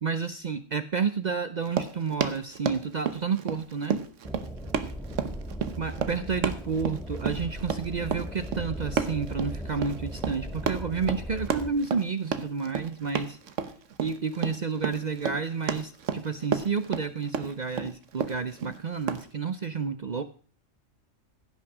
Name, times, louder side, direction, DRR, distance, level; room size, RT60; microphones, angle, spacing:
voice 1, 0.0-4.0 5.8-13.4 14.0-20.2, right 5 dB, 50° right, 12 dB, 0.6 m, -30 dB
Run, 1.6-19.3, right 7 dB, 70° right, 1.3 m, -32 dB
sound 1, 4.2-11.7, equal, ahead, 1.3 m, -38 dB
15.5 x 6.3 x 6.0 m, 0.41 s
omnidirectional pair, 1.3 m